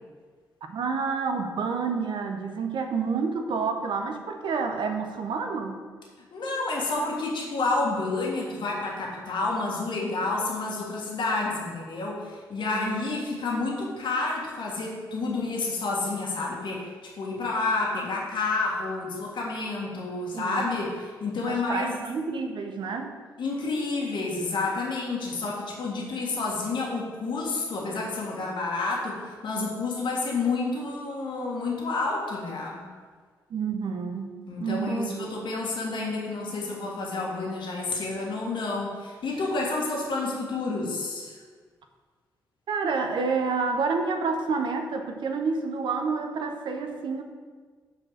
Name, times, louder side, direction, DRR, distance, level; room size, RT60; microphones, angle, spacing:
voice 1, 0.7-5.8 12.7-13.0 20.3-20.7 21.5-23.1 33.5-35.3 42.7-47.2, right 4 dB, 65° right, 5 dB, 0.8 m, -29 dB
voice 2, 6.3-22.0 23.4-32.9 34.5-41.4, left 3 dB, 60° left, -3 dB, 1.7 m, -29 dB
6.1 x 4.3 x 6.4 m, 1.5 s
hypercardioid pair, 40°, 9 cm